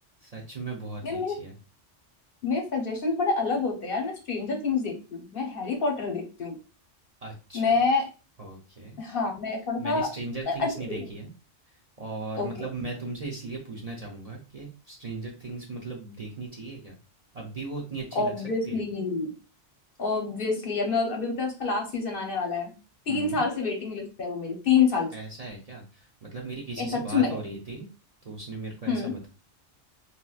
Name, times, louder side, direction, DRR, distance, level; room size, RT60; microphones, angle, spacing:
voice 1, 0.2-1.5 7.2-7.6 8.4-9.0 9.8-11.3 12.0-16.9 17.3-18.3 18.6-18.8 23.1-23.4 25.1-27.9 28.2-29.3, right 3 dB, 40° right, -2 dB, 0.6 m, -37 dB
voice 2, 1.0-1.4 2.4-6.5 7.5-8.0 9.0-10.1 10.5-11.1 12.4-12.7 18.1-19.3 20.0-22.7 23.1-25.1 26.8-27.4 28.9-29.1, left 4 dB, 55° left, 1 dB, 0.8 m, -27 dB
3.0 x 2.9 x 2.3 m, 0.32 s
omnidirectional pair, 1.2 m